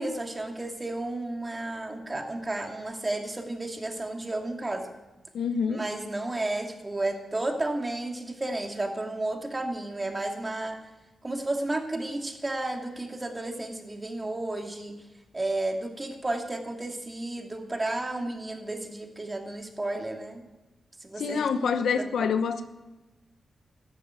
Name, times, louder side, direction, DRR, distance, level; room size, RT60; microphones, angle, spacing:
voice 1, 0.0-4.9 5.7-10.8 11.2-15.0 15.3-20.5 21.0-22.3, right 2 dB, 25° right, 3 dB, 2.7 m, -32 dB
voice 2, 5.3-5.8 21.2-22.6, left 6 dB, 80° left, 9 dB, 1.0 m, -26 dB
14.0 x 11.0 x 9.0 m, 1.1 s
cardioid pair, 70°, 0 cm